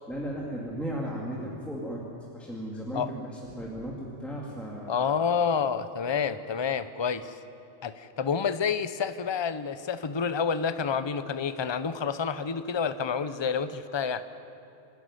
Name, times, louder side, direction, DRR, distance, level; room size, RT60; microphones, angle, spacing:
voice 1, 0.1-2.0 2.3-3.3 3.5-5.0, equal, ahead, -4 dB, 2.4 m, -35 dB
voice 2, 4.9-7.3 7.8-14.2, left 6 dB, 30° left, 12 dB, 0.6 m, -29 dB
26.5 x 13.0 x 9.7 m, 2.7 s
omnidirectional pair, 1.3 m